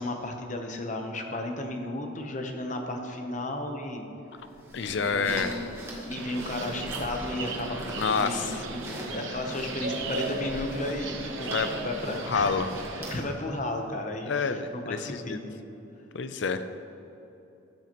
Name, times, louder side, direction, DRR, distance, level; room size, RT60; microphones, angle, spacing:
voice 1, 0.0-4.1 4.5-5.5 6.0-8.5 8.9-11.6 11.8-12.5 13.1-15.5, left 1 dB, 35° left, 4 dB, 0.9 m, -34 dB
sound 1, 4.4-13.4, right 1 dB, 15° right, 1.4 m, -42 dB
voice 2, 4.7-5.6 8.0-8.6 11.4-11.7 12.1-12.7 14.3-15.4 16.1-16.8, left 5 dB, 60° left, 10 dB, 0.5 m, -28 dB
sound 2, 6.1-13.2, right 3 dB, 70° right, 0.9 m, -36 dB
13.0 x 8.4 x 3.0 m, 2.9 s
head